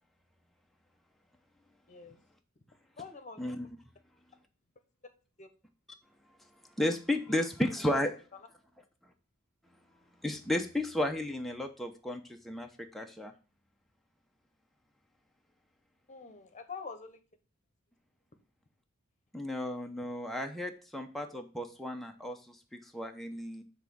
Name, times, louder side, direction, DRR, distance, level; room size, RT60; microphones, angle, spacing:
voice 1, 1.9-2.2 3.0-3.5 5.4-5.5 7.3-8.1 16.1-17.2, left 4 dB, 35° left, 9 dB, 1.0 m, -46 dB
voice 2, 6.8-8.2 10.2-13.3 19.3-23.6, left 1 dB, ahead, 2 dB, 0.7 m, -33 dB
7.3 x 3.5 x 6.1 m, 0.36 s
head